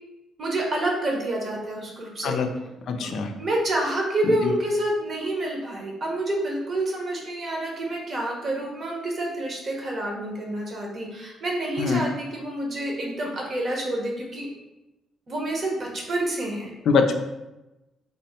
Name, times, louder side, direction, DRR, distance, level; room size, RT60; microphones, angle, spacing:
voice 1, 0.4-2.4 3.0-3.1 3.4-14.5 15.3-16.7, right 1 dB, 45° right, 0 dB, 0.9 m, -28 dB
voice 2, 2.9-3.3 11.8-12.0 16.9-17.2, left 5 dB, 70° left, 5 dB, 0.4 m, -22 dB
3.4 x 2.1 x 4.2 m, 1.0 s
cardioid pair, 90°, 0 cm